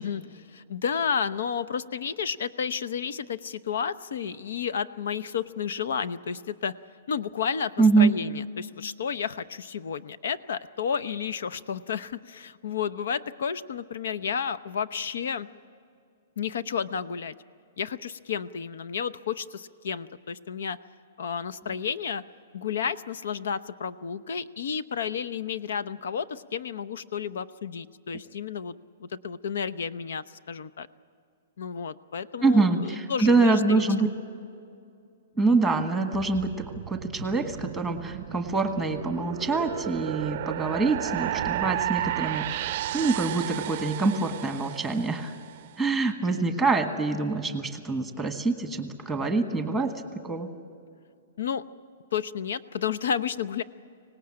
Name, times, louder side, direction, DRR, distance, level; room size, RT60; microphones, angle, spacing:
voice 1, 0.0-6.7 7.1-15.5 16.4-17.4 17.8-20.8 21.2-22.2 22.5-28.7 29.0-30.9 31.6-33.9 51.4-51.6 52.1-53.6, left 7 dB, 75° left, 14 dB, 0.8 m, -31 dB
voice 2, 7.8-8.1 32.4-34.1 35.4-45.3 45.8-50.5, right 3 dB, ahead, 6 dB, 1.4 m, -25 dB
sound 1, 36.1-45.5, right 13 dB, 45° right, 0.5 m, -33 dB
25.0 x 18.5 x 8.8 m, 2.3 s
hypercardioid pair, 165°, 0 cm